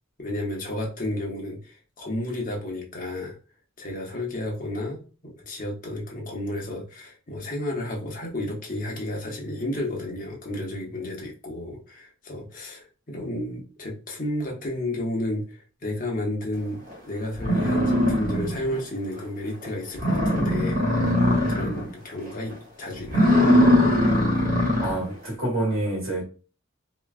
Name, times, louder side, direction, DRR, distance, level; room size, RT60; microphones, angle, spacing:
voice 1, 0.2-3.4 3.8-23.4, left 1 dB, 40° left, 0.9 m, -32 dB
sound 1, 16.9-17.0 17.4-18.8 19.2-19.3 19.6-19.7 19.9-21.9 22.2-22.5 23.0-25.0, left 1 dB, 40° right, 1.0 m, -21 dB
voice 2, 24.8-26.2, right 1 dB, 70° right, 1.4 m, -27 dB
3.0 x 2.4 x 2.4 m
head